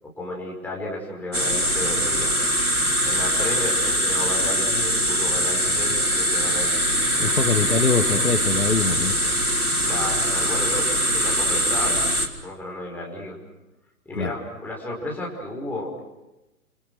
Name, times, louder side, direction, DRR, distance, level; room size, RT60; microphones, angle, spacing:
voice 1, 0.0-2.4 3.0-7.3 8.0-8.1 9.9-12.0 12.4-13.4 14.1-16.1, left 1 dB, 5° left, -2 dB, 5.6 m, -33 dB
sound 1, 1.3-12.3, equal, 85° right, 3.3 m, -22 dB
voice 2, 7.2-9.1 14.2-14.3, left 4 dB, 80° left, 9 dB, 2.2 m, -23 dB
29.0 x 26.5 x 6.3 m, 0.97 s
figure-of-eight pair, 120°, 43 cm